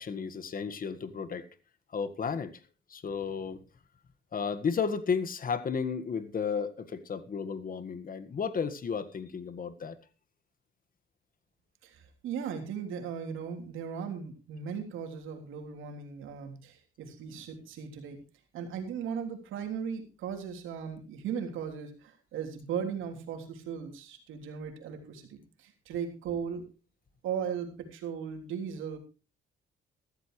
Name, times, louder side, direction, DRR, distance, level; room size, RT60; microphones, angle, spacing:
voice 1, 0.0-1.4 1.9-2.5 2.9-3.6 4.3-10.0, left 6 dB, 45° left, 1.7 m, -33 dB
voice 2, 11.8-18.2 18.5-26.6 27.2-29.0, right 7 dB, 90° right, 3.4 m, -37 dB
14.5 x 14.0 x 3.2 m
cardioid pair, 90°, 20 cm